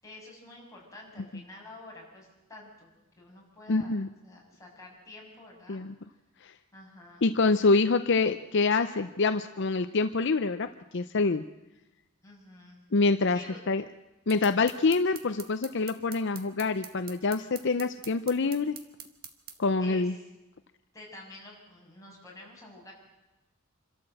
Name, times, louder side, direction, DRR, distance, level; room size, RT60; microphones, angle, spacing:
voice 1, 0.0-2.9 3.2-4.0 4.2-5.8 6.7-7.3 12.2-12.8 13.3-13.6 19.8-20.1 20.9-22.9, left 2 dB, 15° left, -3 dB, 6.5 m, -49 dB
voice 2, 3.7-4.1 5.7-5.9 6.4-6.5 7.2-11.4 12.9-13.4 13.7-13.8 14.3-18.8 19.6-20.2, left 3 dB, 55° left, 10 dB, 0.6 m, -26 dB
sound 1, 14.3-19.6, right 8 dB, 50° right, 1.6 m, -45 dB
27.0 x 13.0 x 7.7 m, 1.0 s
head